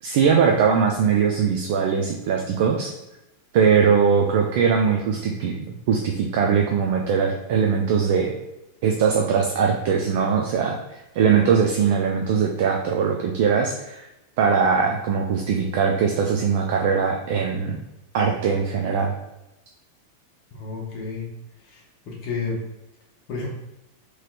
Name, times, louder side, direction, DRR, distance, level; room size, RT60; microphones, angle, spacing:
voice 1, 0.0-2.9 3.5-5.5 5.9-8.3 8.8-14.1 14.4-17.8 18.1-19.1, right 6 dB, 50° right, 1 dB, 0.3 m, -21 dB
voice 2, 20.5-21.3 21.6-22.6 23.3-23.5, left 4 dB, 40° left, -3 dB, 0.7 m, -31 dB
3.0 x 2.8 x 2.2 m, 0.93 s
figure-of-eight pair, 90°, 0 cm